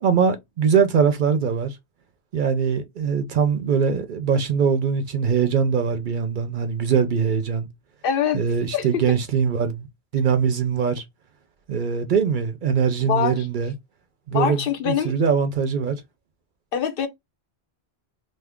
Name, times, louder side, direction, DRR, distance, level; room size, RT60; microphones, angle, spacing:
voice 1, 0.0-1.8 2.3-7.7 8.3-9.9 10.1-11.0 11.7-13.7 14.3-14.6 14.9-16.0, right 6 dB, 60° right, 0.6 m, -22 dB
voice 2, 8.0-8.4 8.7-9.2 13.0-13.5 14.3-15.1 16.7-17.1, left 8 dB, 65° left, 0.7 m, -24 dB
2.6 x 2.3 x 3.4 m
omnidirectional pair, 1.1 m